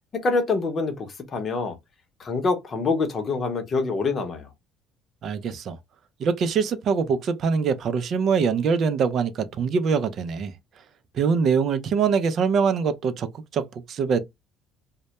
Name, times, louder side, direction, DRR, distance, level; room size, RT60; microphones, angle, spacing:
voice 1, 0.1-1.8 2.2-4.5, left 3 dB, 40° left, 0.7 m, -25 dB
voice 2, 5.2-5.8 6.2-10.5 11.1-13.3 13.5-14.2, right 6 dB, 55° right, 0.4 m, -23 dB
2.1 x 2.1 x 2.8 m
supercardioid pair, 95°, 0 cm